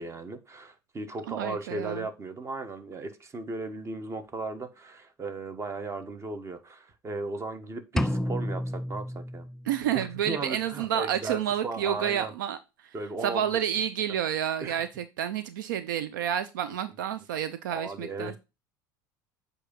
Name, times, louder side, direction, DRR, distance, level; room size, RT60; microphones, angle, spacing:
voice 1, 0.0-9.4 9.9-12.3 12.9-13.5 14.6-14.8 17.7-18.3, right 3 dB, 25° right, 1.1 m, -36 dB
voice 2, 1.2-2.1 9.6-12.9 13.2-18.4, right 9 dB, 70° right, 0.5 m, -30 dB
sound 1, 8.0-9.9, equal, 5° left, 0.3 m, -31 dB
8.1 x 2.7 x 5.4 m
figure-of-eight pair, 70°, 11 cm